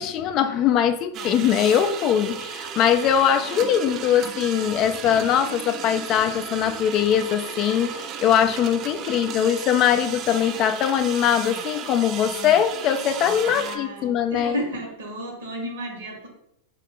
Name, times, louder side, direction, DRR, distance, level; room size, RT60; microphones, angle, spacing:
voice 1, 0.0-14.6, left 9 dB, 40° left, 10 dB, 0.3 m, -21 dB
sound 1, 1.1-13.8, right 8 dB, 40° right, 0.3 m, -35 dB
voice 2, 13.4-16.3, equal, 85° right, 0 dB, 1.4 m, -32 dB
2.9 x 2.8 x 3.6 m, 0.80 s
hypercardioid pair, 120°, 0 cm